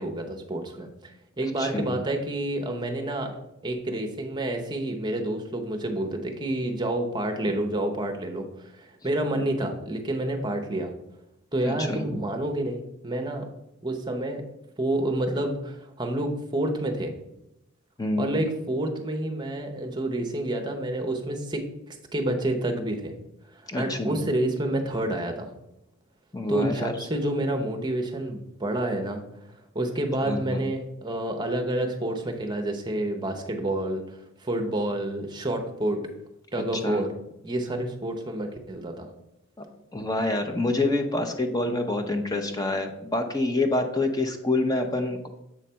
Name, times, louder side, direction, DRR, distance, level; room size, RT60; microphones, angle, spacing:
voice 1, 0.0-3.4 3.6-10.9 11.5-13.5 13.8-14.4 14.8-17.2 18.2-23.2 23.5-25.5 26.5-29.2 29.7-36.1 36.5-37.1 37.4-39.1, right 1 dB, 20° right, 4 dB, 0.7 m, -29 dB
voice 2, 1.6-1.9 11.6-12.0 18.0-18.3 23.7-24.2 26.3-26.9 30.3-30.6 36.8-37.0 39.9-45.3, left 2 dB, 15° left, 5 dB, 0.6 m, -27 dB
7.4 x 3.2 x 5.6 m, 0.87 s
head